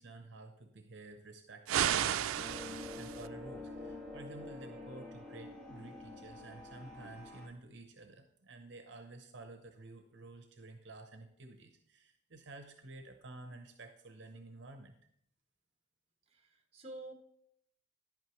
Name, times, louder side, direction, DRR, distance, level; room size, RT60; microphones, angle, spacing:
voice 1, 0.0-14.9, right 2 dB, 60° right, 6 dB, 0.8 m, -52 dB
sound 1, 1.7-3.3, right 10 dB, 90° right, 0.4 m, -33 dB
sound 2, 2.3-7.5, left 2 dB, ahead, 1.7 m, -47 dB
voice 2, 16.3-17.1, right 2 dB, 30° right, 4 dB, 1.1 m, -48 dB
10.5 x 8.8 x 3.1 m, 0.72 s
head